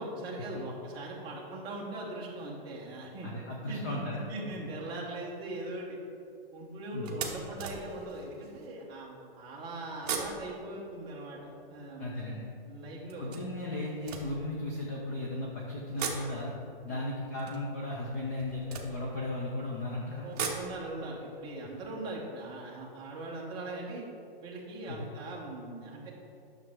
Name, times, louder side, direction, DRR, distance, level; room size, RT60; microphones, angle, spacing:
voice 1, 0.0-3.3 3.7-4.0 4.3-6.0 6.5-12.3 12.7-13.3 16.9-17.0 20.2-24.1 24.4-26.1, right 2 dB, 15° right, -3 dB, 1.1 m, -40 dB
voice 2, 3.2-4.2 6.9-7.2 12.0-12.5 13.2-16.5 16.8-20.3 24.9-25.1, left 1 dB, 15° left, -2 dB, 0.4 m, -36 dB
sound 1, 7.0-8.7 9.9-12.2 13.1-15.1 15.8-19.6 20.1-23.1 23.4-23.5 23.8-23.9, right 5 dB, 40° right, 1.0 m, -41 dB
9.5 x 6.5 x 3.6 m, 2.5 s
hypercardioid pair, 160°, 30 cm